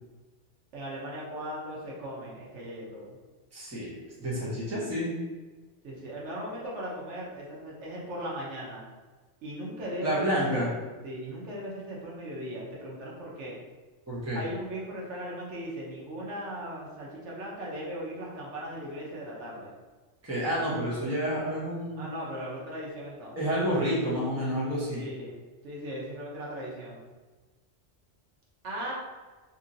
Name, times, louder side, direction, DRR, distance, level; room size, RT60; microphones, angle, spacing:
voice 1, 0.7-3.2 5.8-8.8 9.4-10.7 11.0-13.5 14.3-19.7 22.0-23.4 24.9-25.4 25.6-27.0 28.6-28.9, equal, 70° right, -5 dB, 1.0 m, -38 dB
voice 2, 3.5-5.1 10.0-10.7 14.1-14.4 20.2-22.1 23.4-25.0, equal, 15° right, -8 dB, 0.8 m, -29 dB
2.8 x 2.7 x 2.6 m, 1.3 s
omnidirectional pair, 1.2 m